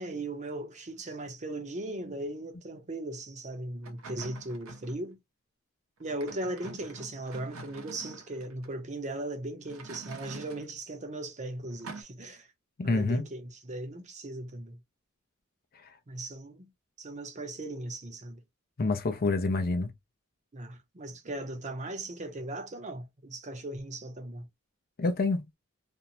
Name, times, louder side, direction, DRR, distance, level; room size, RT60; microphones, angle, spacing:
voice 1, 0.0-5.2 6.0-12.5 12.8-14.8 16.1-16.7 17.0-18.4 20.5-24.5, right 1 dB, 35° right, 0.7 m, -38 dB
sound 1, 3.8-5.0 6.0-8.7 9.7-10.7 11.8-12.0, right 3 dB, 90° right, 0.7 m, -46 dB
voice 2, 12.8-13.2 18.8-19.9 25.0-25.4, left 3 dB, 45° left, 0.6 m, -27 dB
2.6 x 2.1 x 2.8 m
head